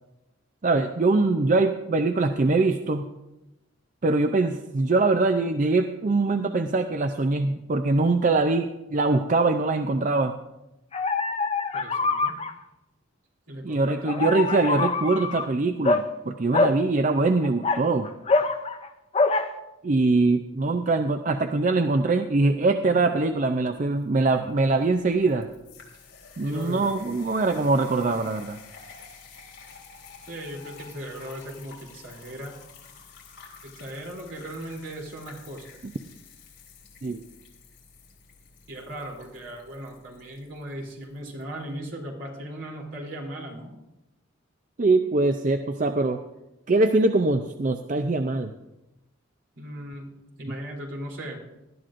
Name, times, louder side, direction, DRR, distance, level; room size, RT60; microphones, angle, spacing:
voice 1, 0.6-3.1 4.0-10.3 13.6-18.1 19.8-25.5 26.4-28.6 37.0-37.2 44.8-46.2 46.7-48.5, right 3 dB, 40° right, 6 dB, 0.5 m, -23 dB
sound 1, 10.9-12.5 14.1-15.5 15.8-16.0 16.5-16.8 17.4-18.9 19.1-19.5, left 3 dB, 30° left, 0.5 m, -24 dB
voice 2, 11.7-12.4 13.5-14.3 26.4-26.9 30.2-32.6 33.6-35.7 38.7-43.7 49.6-51.4, right 1 dB, 70° right, -1 dB, 3.2 m, -37 dB
sound 2, 23.5-41.5, left 5 dB, 60° left, 3.4 m, -50 dB
19.0 x 12.0 x 2.5 m, 0.96 s
head